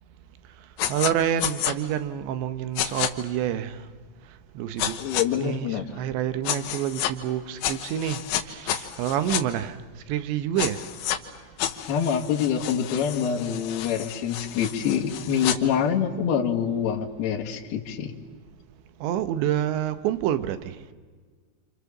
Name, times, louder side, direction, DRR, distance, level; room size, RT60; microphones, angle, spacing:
sound 1, 0.8-1.1 1.4-1.7 2.8-3.1 4.8-5.3 6.5-7.1 7.6-9.4 10.6-11.2 11.6-15.6, left 11 dB, 85° left, 3.8 m, -30 dB
voice 1, 0.9-3.8 4.6-5.0 5.4-8.2 8.5-9.8 10.1-10.8 19.0-20.7, right 10 dB, 80° right, 3.2 m, -27 dB
voice 2, 5.0-5.8 11.9-18.1, left 8 dB, 65° left, 3.7 m, -26 dB
29.0 x 27.5 x 7.3 m
omnidirectional pair, 5.3 m